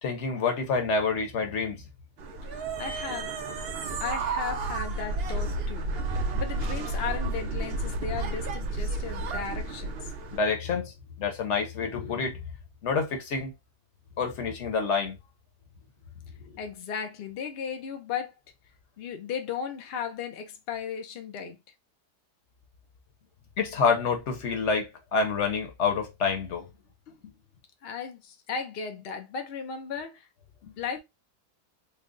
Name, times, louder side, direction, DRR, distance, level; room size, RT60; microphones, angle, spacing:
voice 1, 0.0-1.8 10.3-12.4 12.8-13.5 14.2-15.2 23.6-26.7, left 5 dB, 55° left, 1.0 m, -27 dB
sound 1, 2.2-10.4, right 3 dB, 65° right, 0.6 m, -31 dB
voice 2, 2.4-3.4 4.0-9.9 16.6-18.3 19.0-21.6 27.1-27.2 27.8-30.3 30.8-31.0, left 6 dB, 80° left, 0.5 m, -36 dB
3.2 x 2.1 x 3.7 m
omnidirectional pair, 1.7 m